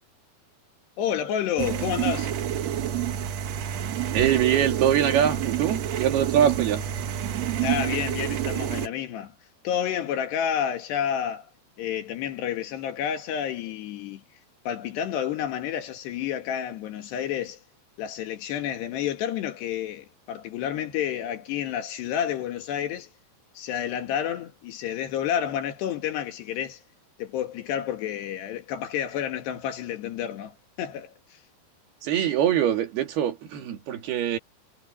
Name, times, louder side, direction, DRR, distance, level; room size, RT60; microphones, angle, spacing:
voice 1, 1.0-2.4 7.6-9.3 9.6-11.5 11.8-14.2 14.7-17.6 18.0-23.1 23.6-26.8 27.2-31.4, left 9 dB, 75° left, 4.0 m, -30 dB
sound 1, 1.6-8.9, right 10 dB, 85° right, 1.5 m, -28 dB
voice 2, 4.1-6.9 32.0-34.4, right 10 dB, 65° right, 4.2 m, -23 dB
omnidirectional pair, 4.9 m